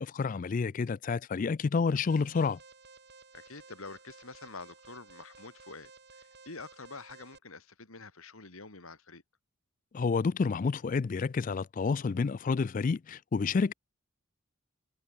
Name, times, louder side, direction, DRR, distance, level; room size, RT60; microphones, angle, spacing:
voice 1, 0.0-2.6 9.9-13.7, left 5 dB, 35° left, 0.3 m, -29 dB
Alarm, 2.0-7.4, right 4 dB, 50° right, 6.0 m, -55 dB
voice 2, 3.3-9.2, left 3 dB, 75° left, 3.1 m, -47 dB
head